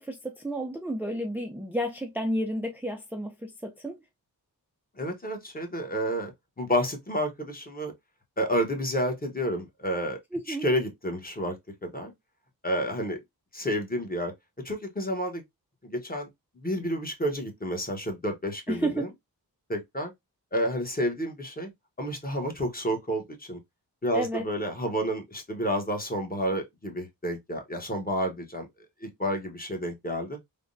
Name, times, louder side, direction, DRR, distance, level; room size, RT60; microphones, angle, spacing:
voice 1, 0.0-4.0 10.3-10.7 18.7-19.1 24.1-24.5, right 1 dB, 5° right, 0.4 m, -31 dB
voice 2, 5.0-6.3 6.6-7.9 8.4-10.2 10.5-11.5 11.8-12.1 12.6-13.2 13.5-14.3 14.6-15.4 15.8-16.3 16.6-19.1 19.7-20.1 20.5-21.7 22.0-23.6 24.0-28.7 29.0-30.4, equal, 25° left, 1.0 m, -30 dB
3.5 x 2.2 x 2.5 m
wide cardioid pair, 80°, 38 cm